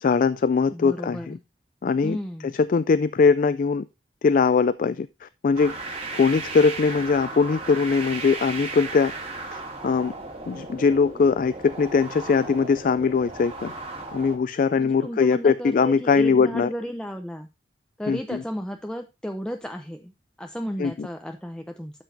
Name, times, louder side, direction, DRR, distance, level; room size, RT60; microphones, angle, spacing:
voice 1, 0.0-1.4 1.8-2.2 2.7-3.8 4.2-5.7 6.1-9.1 9.5-10.1 10.5-13.7 14.1-16.7 18.1-18.4 20.8-21.1, left 5 dB, 50° left, 15 dB, 0.3 m, -21 dB
voice 2, 0.7-1.4 2.0-2.5 14.8-17.5 18.0-20.1 20.4-22.0, equal, 5° left, 4 dB, 0.6 m, -33 dB
sound 1, 5.5-14.4, right 3 dB, 35° right, 2.6 m, -36 dB
12.5 x 6.1 x 2.7 m, 0.26 s
head